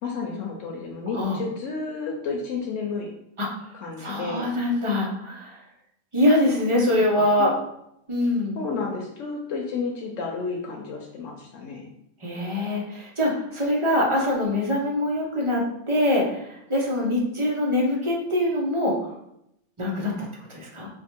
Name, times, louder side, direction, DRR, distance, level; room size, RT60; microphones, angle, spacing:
voice 1, 0.0-3.1 3.7-4.5 7.2-7.5 8.5-11.9, left 4 dB, 90° left, 0 dB, 1.0 m, -31 dB
voice 2, 4.0-5.6 6.1-7.5 8.1-8.6 12.2-19.1 19.8-20.1 20.5-20.9, left 1 dB, 30° right, -2 dB, 0.8 m, -24 dB
3.4 x 2.5 x 4.4 m, 0.78 s
omnidirectional pair, 1.2 m